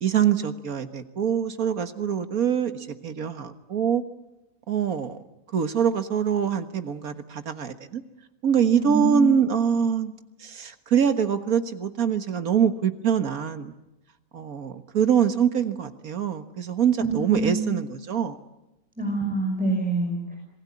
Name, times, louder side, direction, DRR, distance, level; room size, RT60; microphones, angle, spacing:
voice 1, 0.0-4.0 4.7-5.2 5.5-8.0 8.4-10.1 10.4-13.7 14.3-18.4, right 8 dB, 85° right, 9 dB, 1.9 m, -24 dB
voice 2, 8.8-9.3 17.0-17.8 19.0-20.4, right 2 dB, 5° right, 0 dB, 5.6 m, -26 dB
27.0 x 20.0 x 9.7 m, 0.92 s
omnidirectional pair, 1.5 m